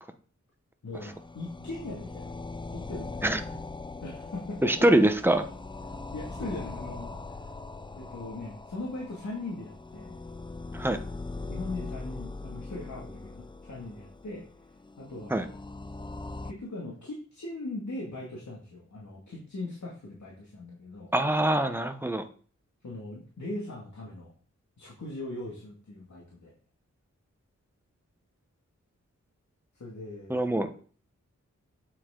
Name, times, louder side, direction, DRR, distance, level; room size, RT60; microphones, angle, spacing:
voice 1, 0.8-2.4 2.7-3.3 4.0-4.9 5.9-7.4 7.9-10.2 11.5-14.5 15.0-15.5 16.4-21.1 22.8-24.3 24.8-26.5 29.7-30.4, left 2 dB, 70° left, -3 dB, 2.3 m, -39 dB
sound 1, 0.9-16.5, left 3 dB, 15° left, 0.5 m, -41 dB
voice 2, 4.6-5.4 10.7-11.0 15.3-15.4 21.1-22.2 30.3-30.7, right 1 dB, 5° right, 7 dB, 0.9 m, -24 dB
8.5 x 7.6 x 3.8 m, 0.42 s
wide cardioid pair, 100°, 30 cm